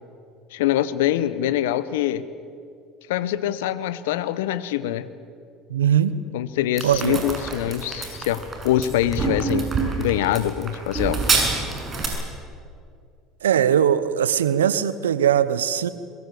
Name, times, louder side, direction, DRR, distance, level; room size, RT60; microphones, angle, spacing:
voice 1, 0.5-2.2 3.1-5.1 6.3-9.7 10.0-11.2, left 12 dB, 75° left, 15 dB, 1.1 m, -24 dB
voice 2, 5.7-6.2 6.8-7.2 13.4-15.9, right 9 dB, 85° right, 15 dB, 0.9 m, -20 dB
sound 1, 6.8-12.1, right 4 dB, 35° right, 7.0 m, -26 dB
23.5 x 21.0 x 8.4 m, 2.3 s
hypercardioid pair, 70°, 0 cm